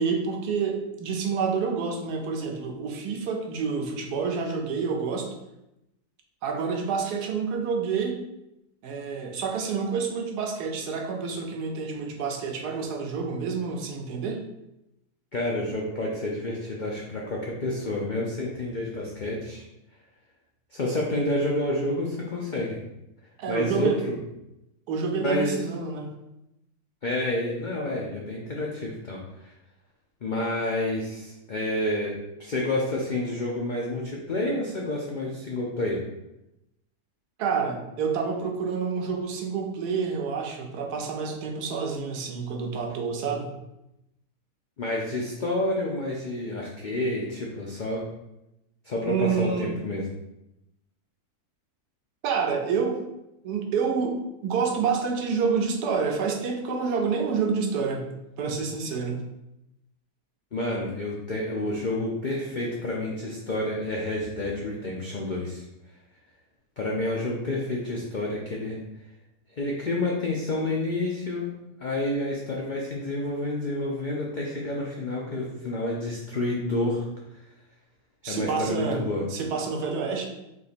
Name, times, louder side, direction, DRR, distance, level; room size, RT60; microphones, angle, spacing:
voice 1, 0.0-5.3 6.4-8.2 8.8-14.4 23.4-24.0 24.9-26.1 37.4-43.5 49.0-49.8 52.2-53.0 53.4-58.1 58.4-59.2 78.2-79.0 79.3-80.3, right 5 dB, 90° right, 2 dB, 1.3 m, -28 dB
voice 2, 15.3-19.6 20.7-22.8 23.5-24.2 25.2-25.5 27.0-29.2 30.2-36.0 44.8-48.0 48.9-50.0 60.5-65.6 66.8-68.8 69.6-71.5 71.8-77.0 78.3-79.2, left 1 dB, 85° left, -2 dB, 0.4 m, -29 dB
3.6 x 2.8 x 4.1 m, 0.89 s
omnidirectional pair, 1.6 m